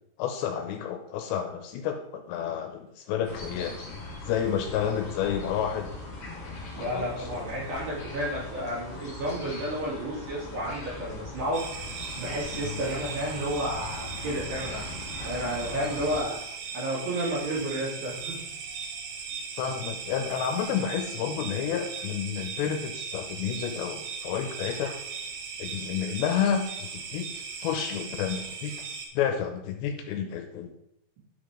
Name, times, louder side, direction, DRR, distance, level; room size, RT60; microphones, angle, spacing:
voice 1, 0.2-3.8 4.3-5.9 6.7-7.5 12.5-12.8 19.6-24.9 25.6-27.3 27.6-28.7 29.2-30.7, left 8 dB, 80° left, 5 dB, 2.9 m, -30 dB
sound 1, 3.2-16.2, left 2 dB, 55° left, 1.6 m, -40 dB
voice 2, 6.7-11.7 12.2-14.9 15.2-16.4 16.7-18.4, right 1 dB, 65° right, -7 dB, 5.2 m, -31 dB
sound 2, 11.5-29.1, right 5 dB, 80° right, 3.4 m, -38 dB
12.0 x 5.1 x 3.8 m, 0.80 s
omnidirectional pair, 5.3 m